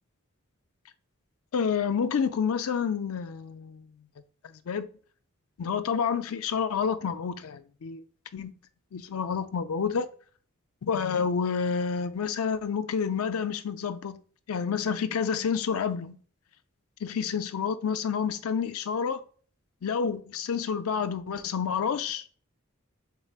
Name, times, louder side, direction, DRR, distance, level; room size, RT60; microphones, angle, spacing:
voice 1, 1.5-3.9 4.7-4.9 5.6-8.0 8.3-8.5 8.9-10.1 10.8-14.2 14.5-16.2 17.0-19.2 19.8-22.3, left 6 dB, 75° left, 0.4 m, -29 dB
4.6 x 3.6 x 2.4 m
head